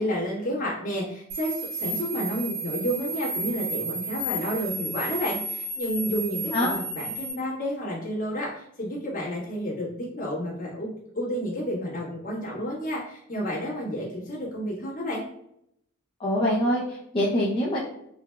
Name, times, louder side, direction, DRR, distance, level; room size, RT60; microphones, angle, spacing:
voice 1, 0.0-15.2, equal, 40° left, -5 dB, 1.4 m, -30 dB
sound 1, 1.3-7.3, right 2 dB, 35° right, 1.1 m, -32 dB
voice 2, 16.2-17.8, equal, 25° left, -5 dB, 0.5 m, -24 dB
3.9 x 3.3 x 2.2 m, 0.75 s
head